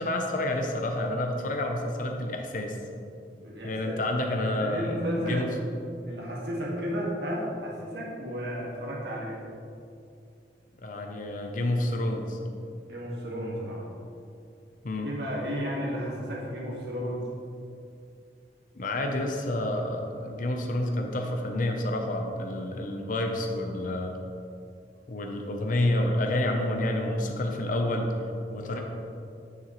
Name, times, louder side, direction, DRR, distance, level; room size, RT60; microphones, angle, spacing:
voice 1, 0.0-2.8 3.6-5.5 10.8-12.4 14.8-15.1 18.7-24.1 25.1-28.1 28.5-28.8, left 1 dB, 50° left, 3 dB, 0.7 m, -29 dB
voice 2, 3.3-4.0 4.4-5.5 6.1-9.4 12.8-13.9 15.0-17.2 28.6-28.8, equal, 70° right, -4 dB, 1.8 m, -33 dB
9.5 x 6.7 x 3.1 m, 2.5 s
head